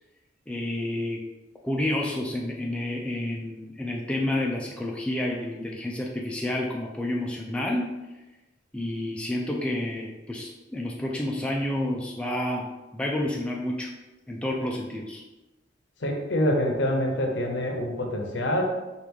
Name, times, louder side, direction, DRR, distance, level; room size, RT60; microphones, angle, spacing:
voice 1, 0.5-1.2 1.6-7.9 8.7-12.7 12.9-13.9 14.3-15.2, left 1 dB, 5° left, -1 dB, 0.3 m, -29 dB
voice 2, 16.0-18.6, left 1 dB, 75° left, 2 dB, 0.7 m, -26 dB
4.5 x 2.4 x 3.4 m, 1.1 s
head